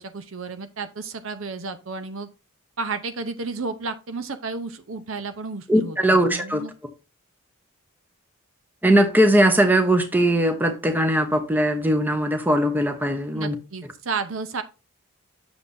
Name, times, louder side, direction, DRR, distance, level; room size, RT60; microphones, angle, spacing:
voice 1, 0.0-2.3 2.8-6.7 13.3-14.6, right 4 dB, 70° right, 0.7 m, -32 dB
voice 2, 5.7-6.6 8.8-13.5, right 1 dB, 10° right, 0.8 m, -20 dB
8.0 x 6.9 x 2.6 m
head